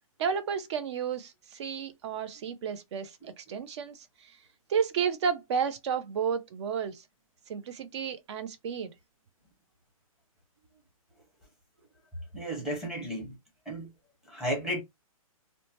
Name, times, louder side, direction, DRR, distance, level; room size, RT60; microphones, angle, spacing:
voice 1, 0.2-4.4 4.7-7.0 7.5-8.9, right 7 dB, 50° right, 0.6 m, -32 dB
voice 2, 12.3-13.4 13.7-13.9 14.3-14.8, equal, 5° right, 0.8 m, -33 dB
2.8 x 2.2 x 2.8 m
hypercardioid pair, 150°, 18 cm